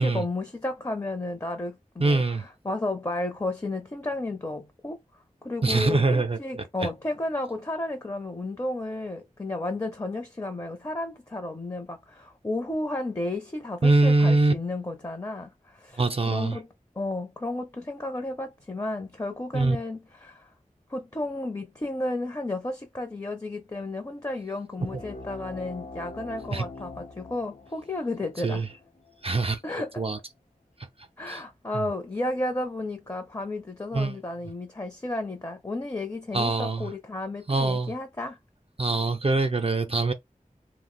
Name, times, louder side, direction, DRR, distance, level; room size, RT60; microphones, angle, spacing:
voice 1, 0.0-5.0 5.4-16.7 17.0-20.5 20.9-28.6 29.6-30.0 31.2-38.4, left 2 dB, 25° left, 0.6 m, -33 dB
voice 2, 2.0-2.4 5.6-6.6 13.8-14.5 16.0-16.6 19.5-19.8 24.9-25.0 26.5-26.6 28.4-28.7 29.2-29.6 30.0-30.2 31.3-31.4 33.9-34.2 36.3-36.9 37.5-37.9 38.8-40.1, right 3 dB, 45° right, 0.4 m, -23 dB
sound 1, 24.8-29.9, left 2 dB, 65° left, 0.6 m, -44 dB
2.4 x 2.0 x 3.8 m
wide cardioid pair, 40°, 14 cm